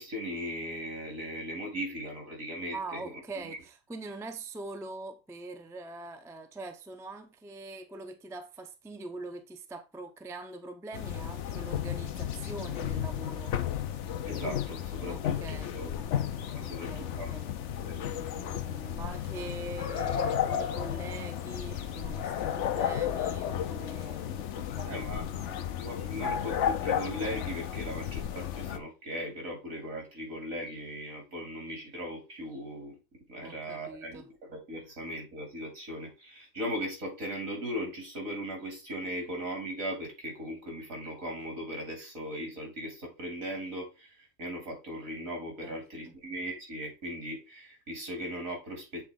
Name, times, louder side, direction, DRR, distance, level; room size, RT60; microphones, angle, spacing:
voice 1, 0.0-3.6 14.3-15.4 15.7-16.3 16.6-17.4 17.8-18.4 24.8-33.0 33.3-49.1, equal, 75° right, 3.5 m, -38 dB
voice 2, 2.7-13.5 15.1-15.7 16.5-17.6 18.1-25.8 33.4-34.3 45.6-46.1, right 2 dB, 5° right, 0.5 m, -43 dB
sound 1, 10.9-28.8, left 9 dB, 65° left, 0.9 m, -33 dB
8.0 x 3.9 x 3.7 m
omnidirectional pair, 1.4 m